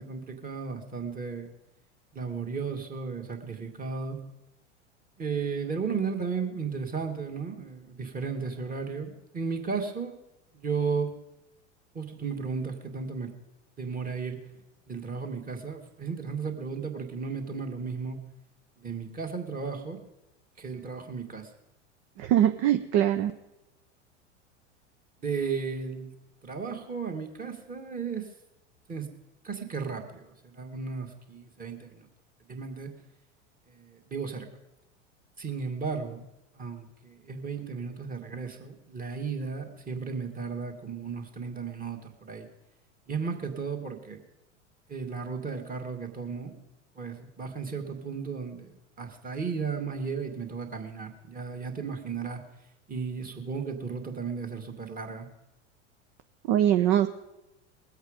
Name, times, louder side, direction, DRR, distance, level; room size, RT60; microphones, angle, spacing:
voice 1, 0.0-1.5 2.1-4.2 5.2-10.1 10.5-11.1 11.9-13.3 13.8-14.4 14.9-18.2 18.8-20.0 20.6-21.5 25.2-26.1 26.4-28.3 28.9-29.1 29.4-32.1 32.5-32.9 33.7-34.5 35.4-36.2 36.5-42.5 43.1-44.2 44.9-46.6 46.9-48.7 49.0-52.4 52.9-55.3, right 5 dB, 25° right, 3 dB, 2.2 m, -34 dB
voice 2, 22.2-23.3 56.5-57.1, right 11 dB, 45° right, 8 dB, 0.7 m, -22 dB
21.0 x 8.0 x 5.1 m, 0.93 s
figure-of-eight pair, 85°, 37 cm